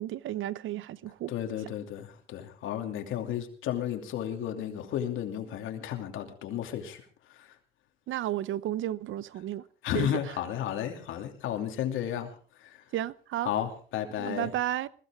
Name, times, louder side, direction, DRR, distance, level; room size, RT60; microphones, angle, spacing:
voice 1, 0.0-1.3 8.1-9.6 9.9-10.1 12.9-13.5 14.2-14.9, right 13 dB, 80° right, 0.8 m, -32 dB
voice 2, 1.3-7.0 7.3-7.5 9.8-12.3 12.6-12.8 13.4-14.5, left 10 dB, 85° left, 2.7 m, -33 dB
21.0 x 16.0 x 3.6 m
cardioid pair, 90°, 20 cm